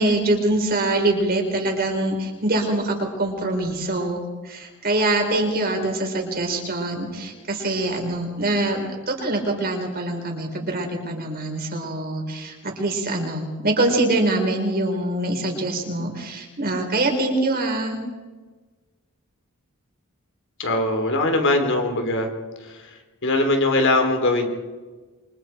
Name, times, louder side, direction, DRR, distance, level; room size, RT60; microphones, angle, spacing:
voice 1, 0.0-18.0, right 2 dB, 45° right, 2 dB, 4.6 m, -24 dB
voice 2, 20.6-22.3 22.6-22.8 23.2-24.5, left 2 dB, 60° left, 4 dB, 3.5 m, -21 dB
28.0 x 25.0 x 4.6 m, 1.3 s
head